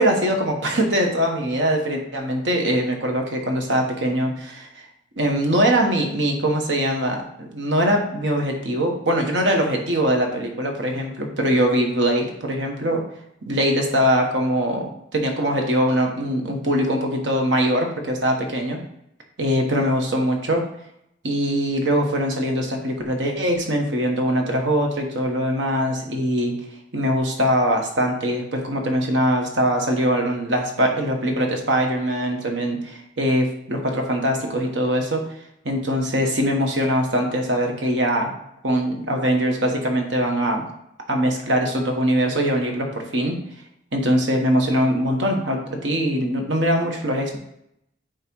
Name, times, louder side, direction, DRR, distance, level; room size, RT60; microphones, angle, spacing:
voice 1, 0.0-4.8 5.2-13.0 13.5-18.8 19.4-20.6 21.2-26.5 26.9-35.2 35.6-38.3 38.6-40.6 41.1-43.4 43.9-47.4, equal, 80° right, 2 dB, 1.5 m, -22 dB
9.0 x 3.3 x 4.7 m, 0.79 s
head